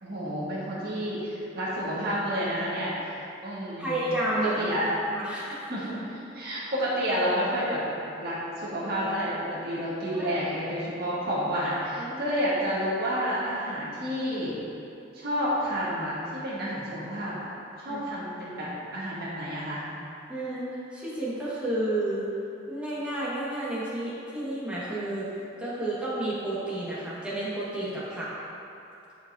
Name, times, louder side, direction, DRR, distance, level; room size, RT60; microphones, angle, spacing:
voice 1, 0.0-4.0 4.5-4.9 5.7-7.8 8.2-9.4 9.6-14.5 15.1-17.5 17.8-18.7 18.9-19.8, equal, 55° right, -9 dB, 1.6 m, -30 dB
voice 2, 3.8-4.5 5.1-5.7 10.2-10.3 12.0-12.2 17.9-18.0 20.3-22.3 22.7-25.3 25.6-28.3, right 1 dB, 5° right, -9 dB, 1.6 m, -31 dB
11.0 x 4.9 x 2.7 m, 2.8 s
head